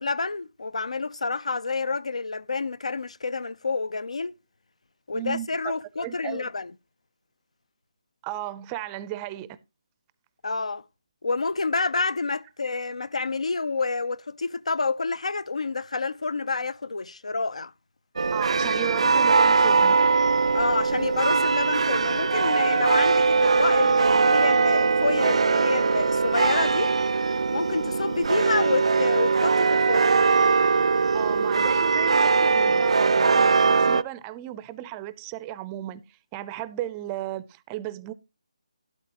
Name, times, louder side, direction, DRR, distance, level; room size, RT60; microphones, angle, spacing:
voice 1, 0.0-4.3 5.1-6.7 10.4-10.8 11.2-17.7 20.5-26.9 27.5-30.1, left 3 dB, 85° left, 0.6 m, -28 dB
voice 2, 5.1-5.5 6.0-6.4 8.2-9.6 18.3-20.0 31.1-38.1, right 13 dB, 15° right, 0.5 m, -35 dB
sound 1, 18.2-34.0, right 4 dB, 70° right, 0.5 m, -21 dB
12.5 x 11.5 x 2.9 m
hypercardioid pair, 165°, 3 cm